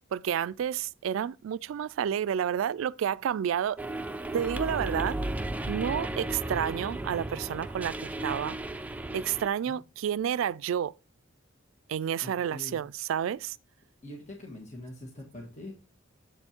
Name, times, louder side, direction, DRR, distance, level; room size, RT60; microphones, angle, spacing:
voice 1, 0.1-3.8 4.3-5.2 5.7-8.6 9.1-10.9 11.9-13.6, right 9 dB, 85° right, 0.3 m, -30 dB
sound 1, 3.8-9.5, right 2 dB, 10° right, 0.4 m, -34 dB
voice 2, 12.2-12.8 14.0-15.7, left 1 dB, 35° left, 1.6 m, -43 dB
7.8 x 4.5 x 4.3 m
head